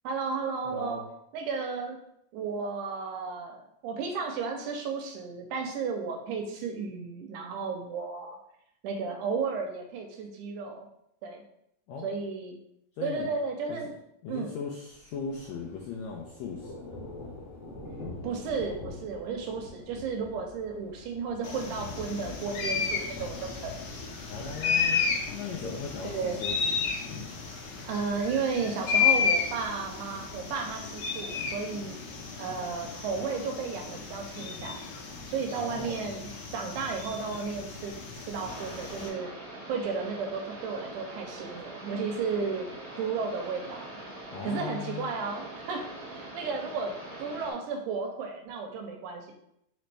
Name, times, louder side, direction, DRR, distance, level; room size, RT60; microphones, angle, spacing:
voice 1, 0.0-1.0 1.3-2.0 2.3-8.4 8.8-10.9 11.2-11.4 12.0-12.6 13.0-13.9 14.3-14.5 18.2-23.9 26.0-26.4 27.5-32.0 32.4-34.8 35.3-39.3 39.7-42.7 43.0-43.8 44.4-46.9 47.2-49.3, right 5 dB, 80° right, 3 dB, 1.8 m, -33 dB
voice 2, 0.6-1.0 11.9-12.1 13.0-13.3 13.7-13.8 14.2-17.0 24.3-25.0 25.3-26.6 35.5-36.1 44.3-45.1, left 5 dB, 90° left, -2 dB, 1.6 m, -38 dB
Thunder, 14.9-30.5, left 2 dB, 35° left, 0.9 m, -46 dB
sound 1, 21.4-39.1, left 6 dB, 70° left, 1.8 m, -32 dB
sound 2, 38.4-47.5, right 2 dB, 50° right, 1.0 m, -43 dB
5.0 x 3.2 x 3.3 m, 0.77 s
omnidirectional pair, 3.8 m